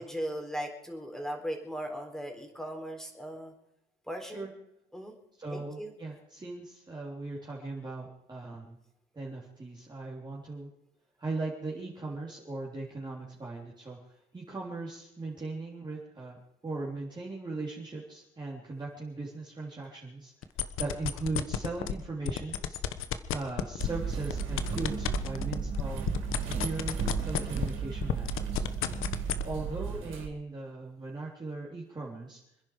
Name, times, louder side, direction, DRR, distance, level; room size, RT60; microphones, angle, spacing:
voice 1, 0.0-3.5 4.1-4.5 4.9-5.1 5.5-5.9, equal, ahead, 3 dB, 4.0 m, -38 dB
voice 2, 5.4-8.8 9.1-10.7 11.2-14.0 14.3-20.3 20.8-22.8 23.3-26.1 26.4-28.6 29.4-32.4, right 3 dB, 20° right, -4 dB, 3.6 m, -38 dB
sound 1, 20.4-21.9 22.3-27.8 28.0-29.4, left 11 dB, 75° left, 1.3 m, -31 dB
sound 2, 23.8-30.3, right 6 dB, 70° right, 4.0 m, -34 dB
26.5 x 10.5 x 5.0 m, 0.81 s
cardioid pair, 125°, 21 cm